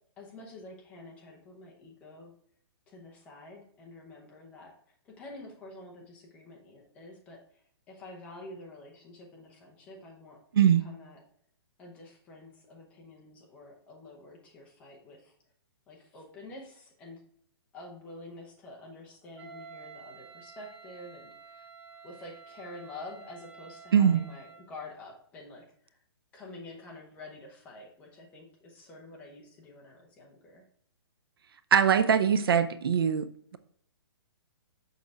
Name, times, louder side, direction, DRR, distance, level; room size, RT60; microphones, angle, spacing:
voice 1, 0.2-2.3 2.9-4.7 5.2-7.4 7.9-10.4 10.8-11.2 11.8-15.3 15.9-17.2 17.7-21.6 22.0-25.6 26.3-30.6, left 2 dB, 10° left, -1 dB, 0.8 m, -48 dB
voice 2, 10.5-10.9 23.9-24.2 31.7-33.6, right 8 dB, 60° right, 11 dB, 0.6 m, -22 dB
Wind instrument woodwind instrument, 19.4-24.7, right 5 dB, 85° right, 1.9 m, -50 dB
6.5 x 6.4 x 3.5 m, 0.64 s
hypercardioid pair, 180°, 14 cm